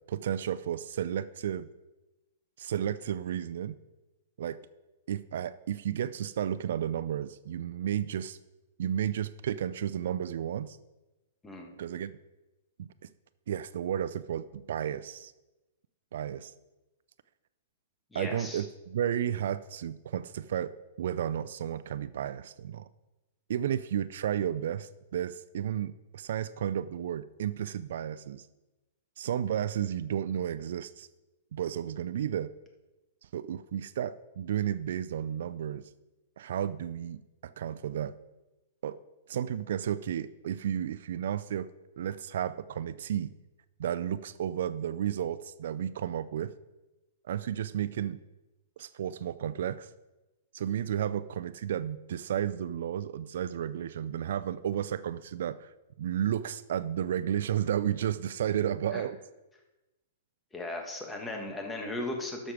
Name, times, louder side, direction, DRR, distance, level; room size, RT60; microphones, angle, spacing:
voice 1, 0.1-1.7 2.6-3.8 4.4-4.6 5.1-8.4 8.8-10.8 11.8-12.1 12.8-12.9 13.5-15.3 16.1-16.5 18.1-20.7 21.0-22.9 23.5-28.4 29.2-31.1 31.5-32.5 33.3-35.8 36.4-38.1 38.8-39.0 39.3-41.7 42.0-43.3 43.8-46.5 47.3-48.2 48.8-49.9 50.5-59.2, right 10 dB, 70° right, 15 dB, 0.4 m, -32 dB
voice 2, 11.4-11.7 18.1-18.6 58.9-59.0 60.5-62.5, left 2 dB, 10° left, 2 dB, 1.6 m, -37 dB
12.5 x 6.4 x 4.9 m, 1.0 s
hypercardioid pair, 150°, 0 cm